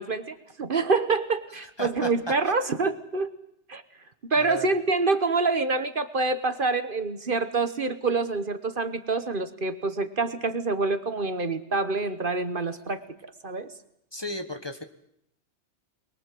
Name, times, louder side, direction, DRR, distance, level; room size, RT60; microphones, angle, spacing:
voice 1, 0.0-3.3 3.7-3.8 4.2-13.0 13.4-13.7, right 3 dB, 50° right, 11 dB, 1.3 m, -26 dB
voice 2, 1.8-2.5 4.4-4.7 14.1-14.8, equal, 20° left, 7 dB, 1.5 m, -34 dB
23.0 x 22.0 x 7.7 m, 0.75 s
omnidirectional pair, 1.2 m